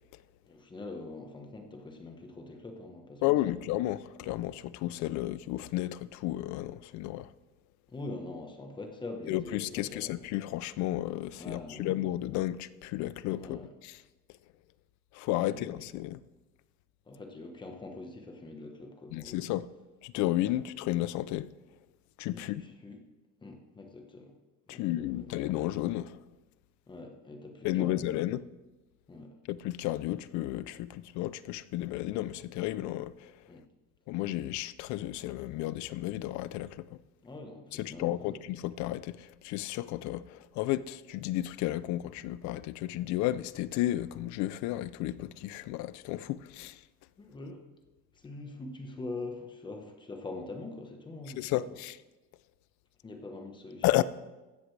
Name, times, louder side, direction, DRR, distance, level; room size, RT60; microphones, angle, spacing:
voice 1, 0.4-3.6 7.9-10.1 11.4-11.9 13.4-13.7 15.4-15.7 17.1-19.4 22.3-23.0 23.4-24.3 24.7-25.3 26.9-28.1 29.1-29.4 33.5-33.6 37.2-38.4 47.2-47.6 48.1-51.8 53.0-54.0, left 2 dB, 15° left, 1.1 m, -44 dB
voice 2, 3.2-7.3 9.3-14.0 15.1-16.2 19.1-19.7 20.0-21.5 22.2-22.6 24.7-26.2 27.6-28.4 29.5-33.4 34.1-37.0 37.7-46.8 51.4-52.0 53.8-54.0, left 15 dB, 70° left, 0.5 m, -32 dB
15.5 x 11.0 x 3.3 m
cardioid pair, 175°, 30 cm